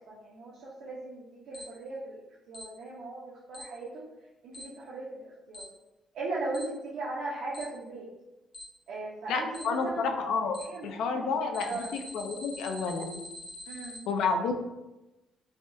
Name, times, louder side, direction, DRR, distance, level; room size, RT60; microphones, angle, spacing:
voice 1, 0.1-2.2 2.5-4.0 4.4-5.7 6.1-8.1 8.9-10.1 10.6-10.9 11.1-11.3 11.6-11.9 13.7-14.0, right 2 dB, 75° right, -7 dB, 0.6 m, -38 dB
Alarm, 1.5-1.6 2.5-2.6 3.5-3.6 4.5-4.6 5.5-5.6 6.5-6.6 7.5-7.6 8.5-8.6 9.5-9.6 10.5-10.6 11.5-14.0, left 1 dB, 30° left, 0.8 m, -44 dB
voice 2, 9.3-10.6 10.8-13.2 14.1-14.5, left 4 dB, 80° left, 5 dB, 0.3 m, -30 dB
3.4 x 2.2 x 2.6 m, 1.0 s
cardioid pair, 130°, 0 cm